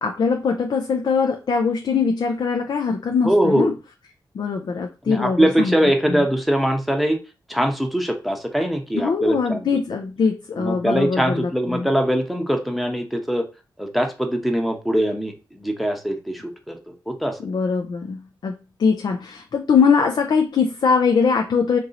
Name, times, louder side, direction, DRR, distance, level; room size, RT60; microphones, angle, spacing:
voice 1, 0.0-3.7 4.3-5.7 6.1-6.2 8.9-11.9 17.4-18.5 18.8-21.8, left 5 dB, 65° left, 3 dB, 0.4 m, -21 dB
voice 2, 3.2-3.7 5.1-7.2 7.5-9.7 10.5-13.4 13.8-17.4, right 1 dB, ahead, 4 dB, 0.8 m, -22 dB
3.0 x 2.7 x 3.9 m, 0.31 s
cardioid pair, 60°, 8 cm